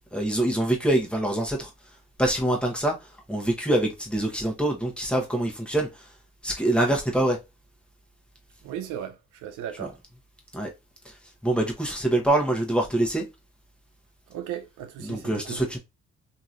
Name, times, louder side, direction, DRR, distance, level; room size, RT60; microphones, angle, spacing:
voice 1, 0.1-1.7 2.2-6.1 6.4-7.4 9.8-9.9 10.5-10.7 11.0-11.1 11.4-13.3 15.0-15.8, right 1 dB, 5° left, 1.1 m, -25 dB
voice 2, 8.6-10.0 14.3-15.6, right 10 dB, 85° right, 0.7 m, -36 dB
2.9 x 2.8 x 2.5 m
cardioid pair, 90°, 30 cm